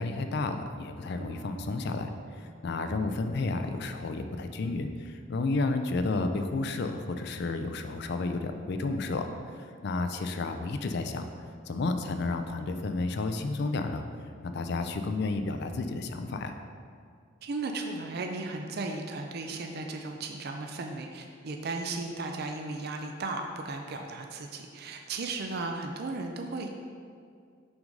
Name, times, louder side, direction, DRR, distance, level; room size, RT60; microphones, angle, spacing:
voice 1, 0.0-2.1 2.4-9.3 9.8-11.3 11.7-14.0 14.4-16.6, left 3 dB, 55° left, 7 dB, 0.4 m, -31 dB
sound 1, 1.1-7.8 8.3-8.4, right 5 dB, 30° right, 1.3 m, -54 dB
voice 2, 17.4-26.7, right 3 dB, 50° right, 3 dB, 0.4 m, -35 dB
6.0 x 3.8 x 5.2 m, 2.2 s
head